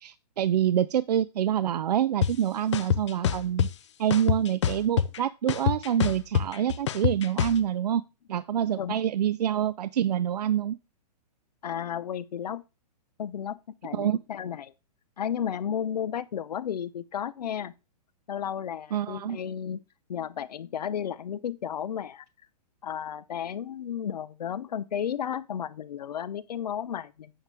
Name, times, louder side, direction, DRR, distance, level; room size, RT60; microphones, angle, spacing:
voice 1, 0.0-3.7 4.0-8.0 8.3-10.8 13.9-14.2 18.9-19.4, right 10 dB, 75° right, 0.5 m, -26 dB
sound 1, 2.2-2.3 2.7-3.7 4.1-5.2 5.5-7.6, left 9 dB, 45° left, 0.6 m, -25 dB
voice 2, 11.6-12.6 13.2-14.7 15.2-17.7 18.3-19.8 20.1-22.2 22.8-27.3, left 9 dB, 80° left, 0.9 m, -33 dB
8.8 x 7.2 x 3.5 m
hypercardioid pair, 175°, 21 cm